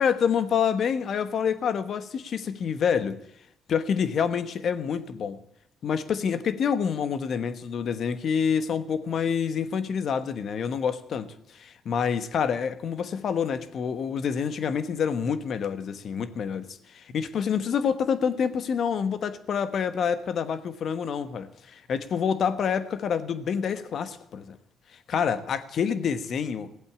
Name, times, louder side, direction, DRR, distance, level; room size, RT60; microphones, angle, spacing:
voice 1, 0.0-3.2 3.7-5.4 5.8-24.6 25.1-26.7, left 7 dB, 60° left, 12 dB, 1.2 m, -27 dB
16.5 x 8.2 x 8.7 m, 0.74 s
supercardioid pair, 70°, 0 cm